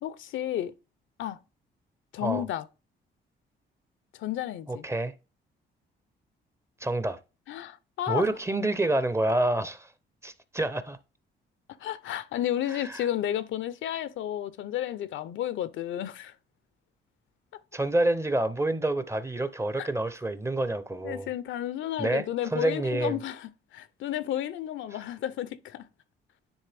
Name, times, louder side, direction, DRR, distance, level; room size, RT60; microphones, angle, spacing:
voice 1, 0.0-0.7 1.2-1.4 2.1-2.7 4.1-4.8 7.5-8.3 11.8-16.3 19.8-19.9 21.0-25.9, left 11 dB, 75° left, 0.6 m, -32 dB
voice 2, 4.7-5.1 6.8-7.2 8.1-9.9 10.2-11.0 12.7-13.1 17.7-21.3 22.0-23.2, right 2 dB, 15° right, 0.6 m, -28 dB
9.7 x 3.3 x 3.4 m
cardioid pair, 90°, 20 cm